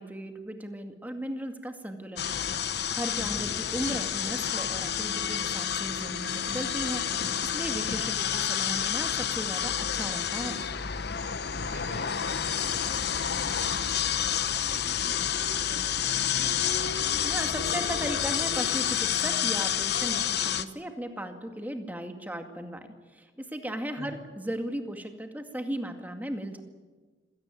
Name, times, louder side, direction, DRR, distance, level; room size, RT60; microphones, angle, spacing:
voice 1, 0.0-7.0 7.4-10.6 17.2-26.6, right 1 dB, 10° right, 5 dB, 2.1 m, -36 dB
sound 1, 2.2-20.6, left 8 dB, 60° left, 0.9 m, -29 dB
voice 2, 11.6-16.7 24.0-24.1, equal, 55° right, 4 dB, 6.4 m, -48 dB
26.0 x 17.5 x 10.0 m, 1.4 s
head